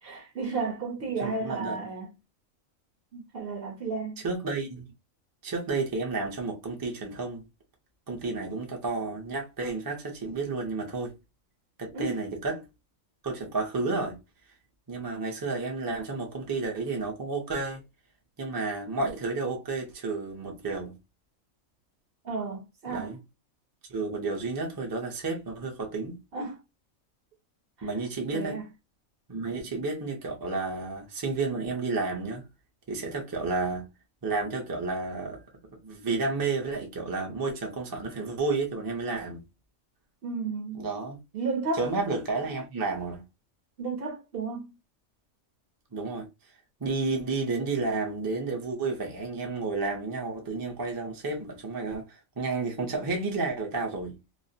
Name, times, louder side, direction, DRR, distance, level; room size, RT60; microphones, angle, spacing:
voice 1, 0.0-2.1 3.1-4.2 11.9-12.2 22.2-23.1 26.3-26.6 27.8-27.9 28.3-28.6 40.2-40.9 41.3-41.8 43.8-44.7, right 4 dB, 55° right, 0.7 m, -33 dB
voice 2, 1.2-1.8 4.2-4.9 5.4-7.4 8.1-11.2 11.8-12.6 13.2-14.2 14.9-17.8 18.4-20.9 22.9-23.2 23.9-26.2 27.8-28.6 29.3-32.5 32.9-33.9 34.2-35.4 35.7-39.4 40.7-41.2 41.7-43.2 45.9-46.3 46.8-54.2, right 3 dB, 30° right, 0.3 m, -31 dB
2.4 x 2.0 x 2.6 m
omnidirectional pair, 1.4 m